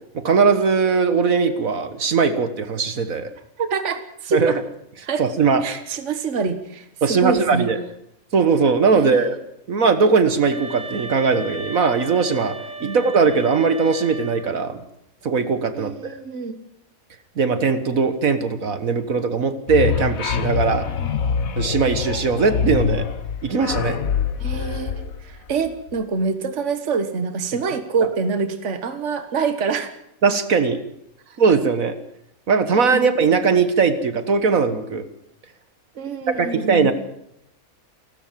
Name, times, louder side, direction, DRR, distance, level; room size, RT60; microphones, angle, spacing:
voice 1, 0.1-3.3 4.3-4.5 5.2-5.6 7.0-7.8 8.3-9.4 9.7-12.5 12.8-14.8 15.2-16.2 17.4-20.9 21.6-23.1 23.4-24.0 30.2-30.8 31.4-31.9 32.5-35.1 36.3-36.9, right 5 dB, 70° right, 10 dB, 1.9 m, -19 dB
voice 2, 3.6-4.6 5.0-5.3 5.6-7.7 8.9-9.2 12.8-13.0 15.7-16.6 21.0-21.3 24.4-29.9 32.9-33.1 35.9-36.9, right 5 dB, 55° right, 9 dB, 1.7 m, -26 dB
sound 1, 10.5-14.6, right 2 dB, 30° right, 2.7 m, -35 dB
sound 2, 19.7-25.9, left 8 dB, 75° left, 1.5 m, -25 dB
29.0 x 13.0 x 7.5 m, 0.78 s
omnidirectional pair, 1.5 m